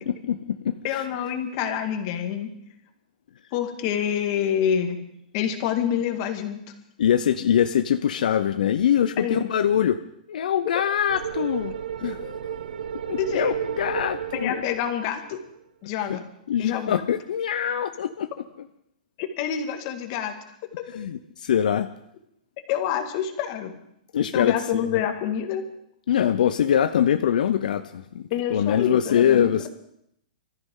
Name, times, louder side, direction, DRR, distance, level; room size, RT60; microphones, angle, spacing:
voice 1, 0.0-1.0 7.0-10.0 10.3-11.7 12.0-12.4 13.1-14.6 16.1-16.2 16.5-18.3 18.6-18.7 21.0-21.9 24.1-25.0 26.1-28.2 28.5-29.7, left 9 dB, 70° left, 9 dB, 0.6 m, -23 dB
voice 2, 0.8-2.5 3.5-5.0 5.3-6.6 9.2-9.5 13.2-13.5 14.3-15.4 15.8-16.2 16.6-17.0 19.2-20.3 22.7-23.7 24.3-25.7 28.3-29.7, left 9 dB, 35° left, 5 dB, 1.9 m, -27 dB
sound 1, 11.1-15.5, right 9 dB, 85° right, 0.7 m, -33 dB
25.0 x 14.0 x 3.8 m, 0.75 s
hypercardioid pair, 170°, 5 cm